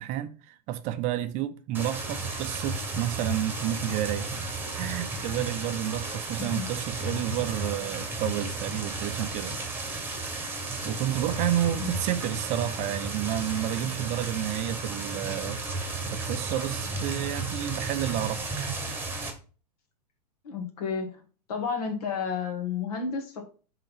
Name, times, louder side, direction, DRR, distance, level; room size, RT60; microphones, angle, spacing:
voice 1, 0.0-4.5 4.7-9.6 10.8-15.6 16.1-18.5, right 12 dB, 35° right, 0.6 m, -30 dB
sound 1, 1.7-19.3, right 3 dB, 10° right, 1.3 m, -33 dB
voice 2, 20.4-21.2 21.5-23.5, left 5 dB, 65° left, 1.9 m, -31 dB
5.4 x 3.8 x 5.7 m
hypercardioid pair, 125°, 21 cm